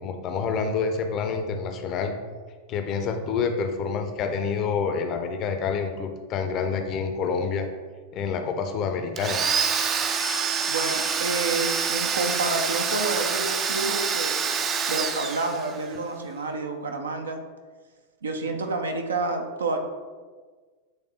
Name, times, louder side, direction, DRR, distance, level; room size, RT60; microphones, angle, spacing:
voice 1, 0.0-2.1 2.7-7.7 8.1-9.4, left 5 dB, 35° left, 6 dB, 0.6 m, -27 dB
Domestic sounds home sounds, 9.2-16.0, right 6 dB, 25° right, 0.5 m, -26 dB
voice 2, 10.7-17.4 18.2-19.8, right 3 dB, 70° right, 4 dB, 0.7 m, -29 dB
7.9 x 3.4 x 3.6 m, 1.5 s
figure-of-eight pair, 90°, 0 cm